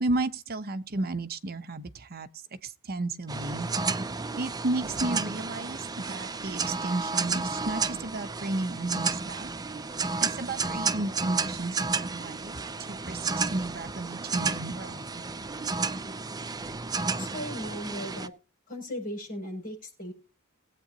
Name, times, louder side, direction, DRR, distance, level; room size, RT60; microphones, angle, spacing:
voice 1, 0.0-2.3 2.6-3.7 4.4-9.5 10.2-12.6 12.9-15.2, right 2 dB, 45° right, 0.9 m, -33 dB
sound 1, 3.3-18.3, right 4 dB, 20° right, 0.5 m, -32 dB
voice 2, 17.2-18.3 18.7-20.1, left 1 dB, 40° left, 6.8 m, -37 dB
19.5 x 8.4 x 2.9 m
head